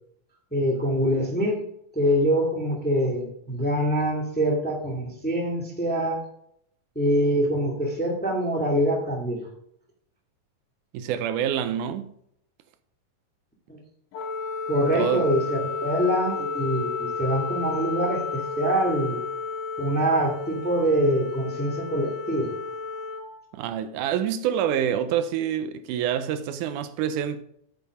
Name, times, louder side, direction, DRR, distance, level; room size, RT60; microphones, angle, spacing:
voice 1, 0.5-1.6 1.9-6.2 7.0-9.5 14.7-19.2 19.8-22.6, equal, 5° left, 1.6 m, -24 dB
voice 2, 10.9-12.1 14.9-15.3 23.5-27.4, right 9 dB, 80° right, 2.1 m, -27 dB
Wind instrument woodwind instrument, 14.1-23.3, left 5 dB, 80° left, 2.8 m, -32 dB
8.5 x 7.6 x 4.8 m
omnidirectional pair, 3.7 m